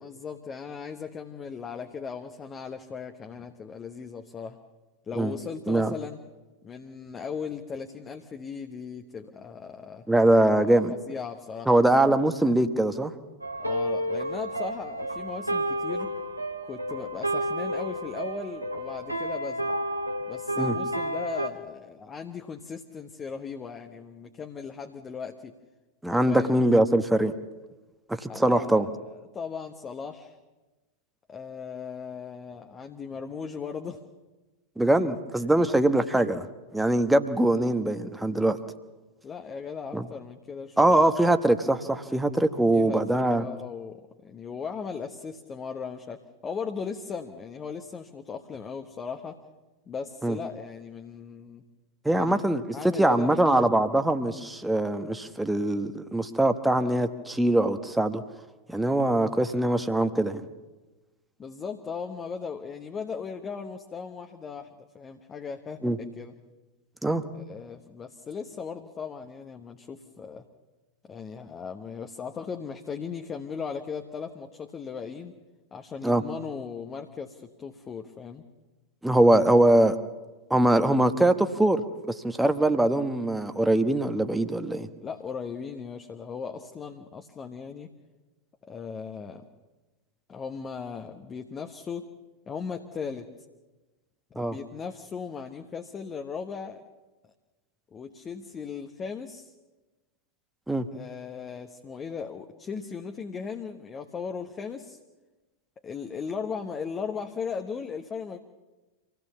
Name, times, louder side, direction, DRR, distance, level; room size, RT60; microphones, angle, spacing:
voice 1, 0.0-4.6 5.0-6.2 6.6-10.0 10.7-11.7 13.6-16.1 16.6-19.8 20.3-25.5 26.0-26.6 28.3-30.4 31.3-34.0 35.5-35.8 39.2-41.0 42.7-49.4 49.9-51.6 52.1-52.4 52.7-53.9 61.4-66.3 67.3-70.4 71.1-75.3 75.7-78.4 85.0-87.9 88.6-89.4 90.3-92.1 92.5-93.3 94.3-96.8 97.9-99.5 100.9-105.0 105.8-108.4, left 6 dB, 20° left, 5 dB, 1.2 m, -37 dB
voice 2, 10.1-10.9 11.7-13.1 20.6-20.7 26.0-27.3 28.2-28.9 34.8-36.5 36.7-38.6 39.9-40.0 40.8-43.4 50.2-50.4 52.0-58.2 58.7-60.4 65.8-66.0 67.0-67.2 76.0-76.2 79.0-80.0 80.5-81.8 82.2-84.9 94.4-94.5 100.7-100.9, right 1 dB, 5° right, 8 dB, 1.2 m, -22 dB
sound 1, 13.4-21.5, right 1 dB, 90° right, 1.7 m, -31 dB
26.0 x 17.5 x 7.2 m, 1.2 s
figure-of-eight pair, 90°, 0 cm